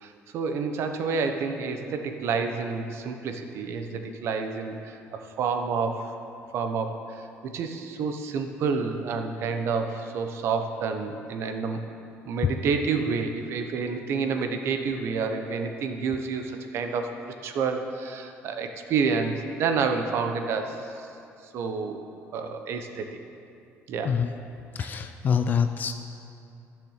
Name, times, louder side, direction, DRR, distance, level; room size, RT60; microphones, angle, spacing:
voice 1, 0.0-6.2 6.5-7.0 7.4-11.8 12.3-21.1 21.5-22.0 22.3-23.2 23.9-24.2 24.8-24.9, right 5 dB, 55° right, 6 dB, 1.0 m, -29 dB
voice 2, 24.8-25.9, left 7 dB, 35° left, 8 dB, 0.4 m, -25 dB
13.0 x 6.7 x 6.6 m, 2.6 s
cardioid pair, 160°, 5 cm